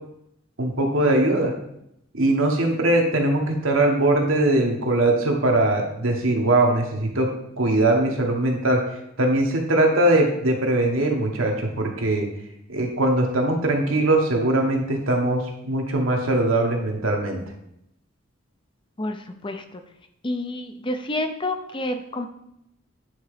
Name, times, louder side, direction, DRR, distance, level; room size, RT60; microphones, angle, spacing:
voice 1, 0.6-1.5 2.1-8.8 9.2-12.3 12.7-17.4, right 1 dB, 80° right, 1 dB, 1.5 m, -21 dB
voice 2, 19.0-19.8 20.2-22.3, left 1 dB, 25° left, 6 dB, 0.5 m, -29 dB
9.5 x 3.7 x 5.0 m, 0.77 s
head